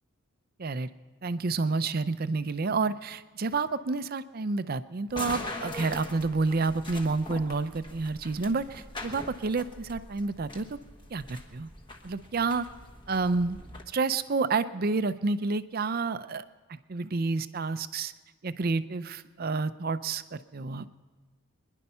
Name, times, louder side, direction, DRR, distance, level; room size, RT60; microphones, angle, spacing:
voice 1, 1.2-10.8 11.1-11.7 12.0-12.7 13.1-13.6 13.9-16.4 16.7-18.1 18.4-20.9, right 3 dB, 40° right, 13 dB, 0.5 m, -29 dB
sound 1, 5.1-13.8, left 2 dB, 20° left, 1.3 m, -42 dB
23.5 x 11.0 x 5.5 m, 1.3 s
head